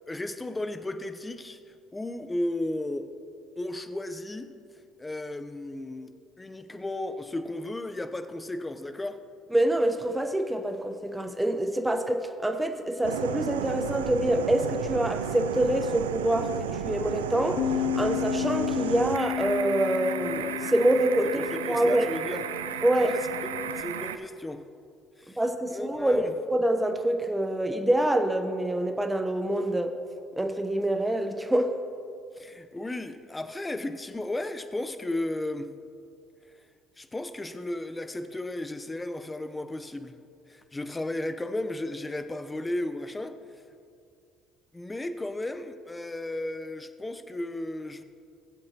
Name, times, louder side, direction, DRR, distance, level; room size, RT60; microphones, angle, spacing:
voice 1, 0.1-1.6 1.9-3.1 3.6-4.5 5.0-6.1 6.4-9.2 21.3-22.4 23.0-24.7 25.2-25.4 25.7-26.3 32.4-35.7 37.0-40.2 40.5-43.4 44.7-48.0, left 1 dB, 15° left, 9 dB, 0.7 m, -34 dB
voice 2, 9.5-17.6 18.0-22.1 22.8-23.1 25.4-30.0 30.4-31.7, right 1 dB, 10° right, 6 dB, 0.9 m, -26 dB
sound 1, 13.0-24.2, right 8 dB, 85° right, 0.4 m, -34 dB
Bass guitar, 17.6-23.8, left 14 dB, 65° left, 0.4 m, -33 dB
18.5 x 7.8 x 2.9 m, 2.3 s
hypercardioid pair, 55°, 0 cm